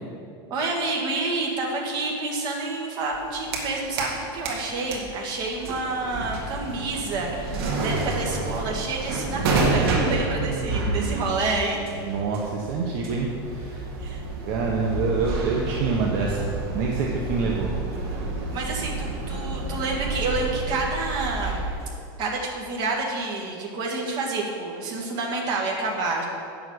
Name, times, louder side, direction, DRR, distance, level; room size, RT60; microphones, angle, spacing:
voice 1, 0.5-11.8 14.0-14.2 18.5-21.6 22.2-26.3, right 3 dB, 35° right, -1 dB, 1.8 m, -28 dB
sound 1, 3.1-4.2 4.4-21.9, right 3 dB, 80° right, 2.0 m, -29 dB
voice 2, 10.3-11.4 11.8-13.9 14.5-18.3, right 4 dB, 50° right, -1 dB, 1.0 m, -27 dB
9.0 x 7.2 x 6.4 m, 2.4 s
supercardioid pair, 165°, 13 cm